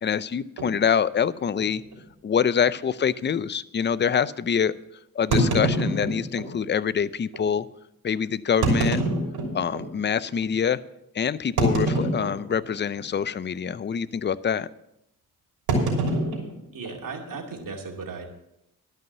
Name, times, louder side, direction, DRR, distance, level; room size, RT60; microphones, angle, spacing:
voice 1, 0.0-1.8 2.2-4.7 5.1-7.7 8.0-9.0 9.5-10.8 11.1-14.7, left 7 dB, 30° left, 16 dB, 0.5 m, -25 dB
sound 1, 0.6-0.8 1.5-1.6 1.9-2.0 2.6-2.7 5.3-6.5 7.3-7.4 8.5-9.9 10.4-10.5 11.6-12.7 12.9-13.3 13.6-13.9 15.7-17.3, right 1 dB, 85° right, 3.1 m, -25 dB
voice 2, 16.7-18.2, right 4 dB, 60° right, 1 dB, 2.5 m, -36 dB
12.0 x 5.6 x 8.0 m, 0.82 s
cardioid pair, 65°, 37 cm